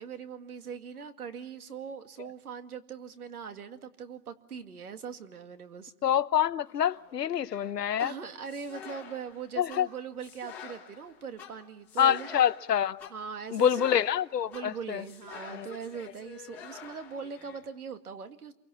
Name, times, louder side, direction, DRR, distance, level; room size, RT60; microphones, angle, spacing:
voice 1, 0.0-5.9 8.0-12.4 13.1-13.8 14.4-18.5, right 6 dB, 60° right, 2.3 m, -41 dB
voice 2, 6.0-8.1 9.6-9.9 12.0-13.1 13.5-15.0 15.5-15.7, left 9 dB, 70° left, 1.0 m, -26 dB
sound 1, 6.7-17.6, left 7 dB, 5° left, 1.2 m, -48 dB
29.0 x 23.5 x 7.2 m
hypercardioid pair, 175°, 50 cm